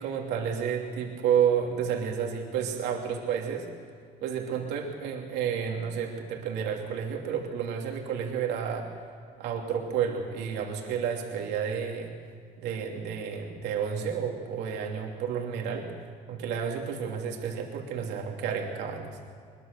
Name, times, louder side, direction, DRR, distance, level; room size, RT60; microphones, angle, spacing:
voice 1, 0.0-3.7 4.2-8.9 9.4-12.1 12.6-15.9 16.3-19.2, right 7 dB, 85° right, 0 dB, 2.9 m, -30 dB
22.5 x 21.5 x 6.8 m, 2.1 s
cardioid pair, 110°, 17 cm